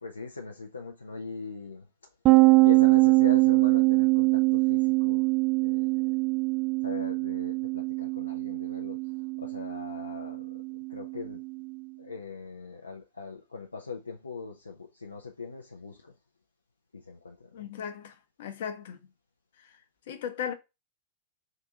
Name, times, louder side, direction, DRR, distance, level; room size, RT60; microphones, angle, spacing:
voice 1, 0.0-1.8 2.6-5.3 5.6-6.2 6.8-10.6 10.9-11.4 12.0-16.1 16.9-17.7, left 5 dB, 80° left, 0.5 m, -41 dB
sound 1, 2.2-11.7, right 25 dB, 35° right, 0.3 m, -24 dB
voice 2, 17.5-19.0 19.6-19.7 20.1-20.5, left 8 dB, 55° left, 0.8 m, -37 dB
3.7 x 2.6 x 3.7 m
figure-of-eight pair, 90°, 0 cm